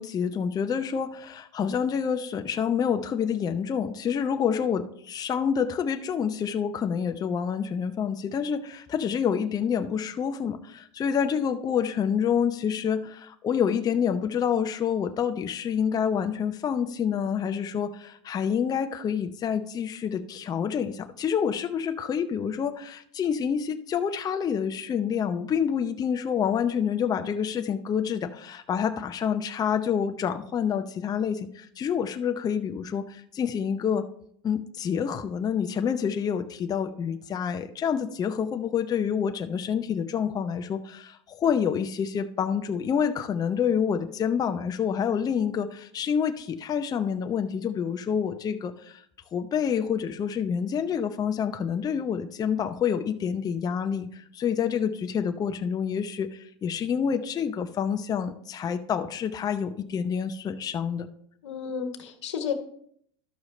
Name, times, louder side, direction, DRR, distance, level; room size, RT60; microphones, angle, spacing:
voice 1, 0.0-34.1 34.4-49.0 49.3-61.1, left 7 dB, 25° left, 7 dB, 0.6 m, -28 dB
voice 2, 61.4-62.5, left 7 dB, 85° left, 7 dB, 1.2 m, -32 dB
12.0 x 6.1 x 3.2 m, 0.65 s
hypercardioid pair, 105°, 15 cm